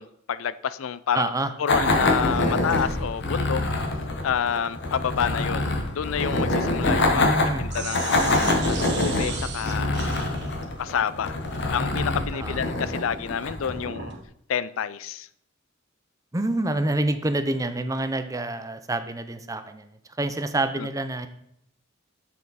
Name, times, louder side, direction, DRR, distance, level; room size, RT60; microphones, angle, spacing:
voice 1, 0.0-1.3 1.6-3.6 4.2-8.2 8.7-10.3 10.8-11.4 11.7-14.1 14.5-15.3 20.8-20.9, left 7 dB, 80° left, 0.4 m, -29 dB
voice 2, 1.1-1.5 6.8-7.6 12.3-12.6 16.3-19.8 20.2-21.3, right 2 dB, 15° right, 0.6 m, -27 dB
sound 1, 1.7-13.8, left 2 dB, 60° left, 1.1 m, -25 dB
sound 2, 2.3-7.4 7.7-14.2, right 4 dB, 60° right, 1.7 m, -39 dB
7.3 x 6.7 x 4.1 m
head